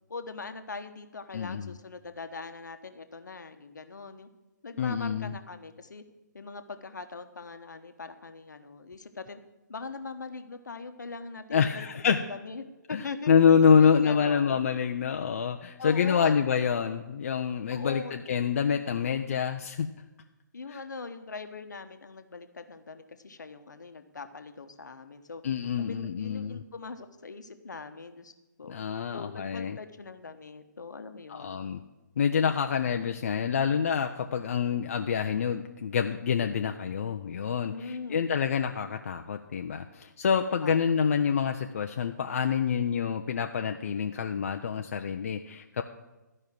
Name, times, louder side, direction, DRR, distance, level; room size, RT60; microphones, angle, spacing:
voice 1, 0.1-4.3 4.6-6.0 6.3-9.4 9.7-13.3 13.8-14.6 15.8-16.4 17.7-18.2 20.5-25.4 25.8-28.3 28.6-28.7 29.1-31.6 37.6-38.3 40.6-41.0, left 4 dB, 65° left, 8 dB, 1.0 m, -41 dB
voice 2, 1.3-1.7 4.8-5.3 11.5-12.2 12.9-19.9 20.7-20.8 25.4-26.6 28.7-29.8 31.3-31.8 32.2-45.8, left 7 dB, 45° left, 5 dB, 0.5 m, -27 dB
12.5 x 5.4 x 7.6 m, 1.1 s
figure-of-eight pair, 135°, 10 cm